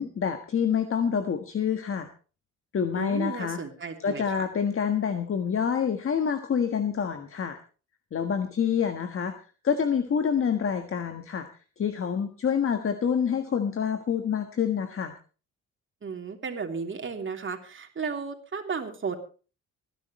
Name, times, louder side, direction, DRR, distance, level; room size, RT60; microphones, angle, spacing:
voice 1, 0.0-2.1 2.7-3.6 4.0-7.6 8.1-9.3 9.6-11.5 11.8-15.2, left 7 dB, 45° left, 7 dB, 1.5 m, -27 dB
voice 2, 2.9-4.5 16.0-19.2, right 5 dB, 40° right, 4 dB, 3.2 m, -34 dB
26.0 x 10.5 x 3.2 m, 0.36 s
cardioid pair, 90°, 30 cm